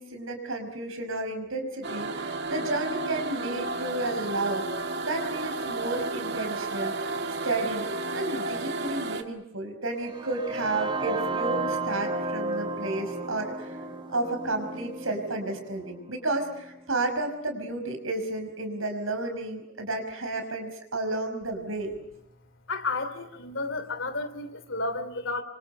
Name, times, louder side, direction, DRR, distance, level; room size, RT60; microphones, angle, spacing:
voice 1, 0.0-7.9 8.1-13.8 14.1-21.9, right 2 dB, 75° right, 6 dB, 5.8 m, -32 dB
sound 1, 1.8-9.2, right 3 dB, 55° right, 2.1 m, -32 dB
sound 2, 10.0-17.9, right 2 dB, 25° right, 2.5 m, -34 dB
voice 2, 22.7-25.4, left 3 dB, 65° left, 9 dB, 3.1 m, -32 dB
27.5 x 25.5 x 6.7 m, 0.80 s
head